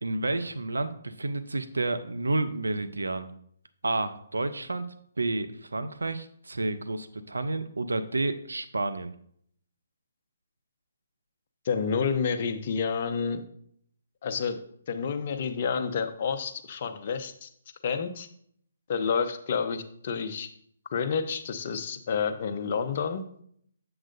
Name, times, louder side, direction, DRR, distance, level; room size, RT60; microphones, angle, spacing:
voice 1, 0.0-3.3 3.8-4.9 5.2-9.1, right 2 dB, 85° right, 11 dB, 0.6 m, -30 dB
voice 2, 11.6-13.4 14.2-17.5 17.8-18.3 18.9-20.5 20.9-23.2, left 6 dB, 45° left, 9 dB, 0.8 m, -29 dB
7.8 x 7.4 x 2.6 m, 0.65 s
figure-of-eight pair, 140°, 0 cm